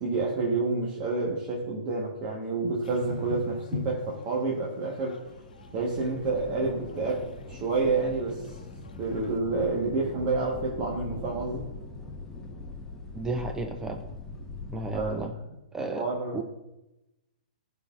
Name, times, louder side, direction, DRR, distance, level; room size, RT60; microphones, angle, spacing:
voice 1, 0.0-5.2 5.7-8.6 9.0-11.6 14.9-15.2 15.9-16.4, right 3 dB, 35° right, -3 dB, 1.3 m, -29 dB
sound 1, 2.8-9.4, left 5 dB, 75° left, 0.8 m, -42 dB
sound 2, 5.3-15.3, left 3 dB, 10° left, 0.9 m, -41 dB
voice 2, 13.2-14.0 14.7-15.3 15.7-16.1 16.3-16.4, right 3 dB, 10° right, 4 dB, 0.5 m, -32 dB
11.5 x 4.0 x 2.5 m, 0.96 s
hypercardioid pair, 120°, 5 cm